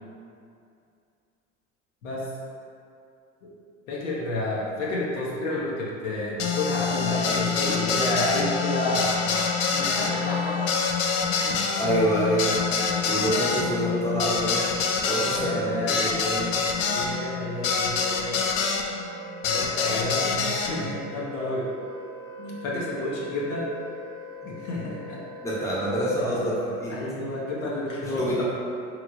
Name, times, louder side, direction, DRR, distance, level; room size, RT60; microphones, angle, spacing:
voice 1, 3.9-10.6 11.3-11.6 15.2-16.1 16.9-18.4 19.4-21.7 22.4-23.7 24.4-25.3 26.2-26.3 26.9-28.3, left 1 dB, 80° left, -5 dB, 0.7 m, -30 dB
sound 1, 6.4-18.9 19.4-20.7, left 5 dB, 45° left, 0.4 m, -26 dB
Wind instrument woodwind instrument, 8.6-26.8, left 1 dB, 30° right, 0.7 m, -42 dB
voice 2, 11.6-12.6 13.1-14.7 15.0-16.5 25.4-27.0 28.0-28.4, right 1 dB, 10° left, -8 dB, 0.9 m, -27 dB
3.0 x 2.9 x 2.4 m, 2.5 s
hypercardioid pair, 70°, 38 cm